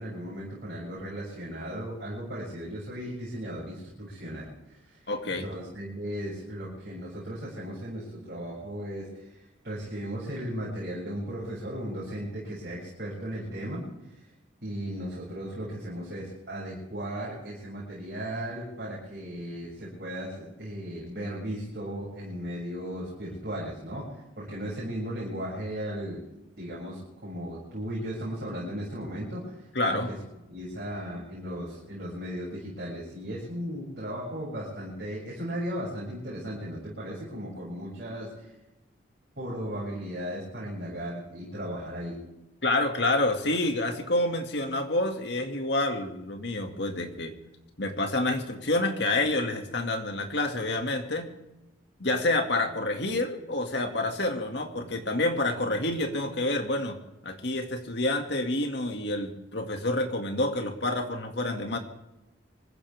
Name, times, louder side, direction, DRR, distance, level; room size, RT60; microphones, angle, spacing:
voice 1, 0.0-9.4 9.6-13.9 14.1-14.3 14.6-26.2 26.6-30.2 30.5-38.5 39.4-42.2, equal, 50° right, -6 dB, 7.3 m, -36 dB
voice 2, 5.1-5.4 29.7-30.1 42.6-47.3 47.8-51.3 52.0-57.0 57.2-61.8, left 2 dB, 60° left, 4 dB, 2.3 m, -28 dB
25.5 x 15.5 x 3.6 m, 0.97 s
head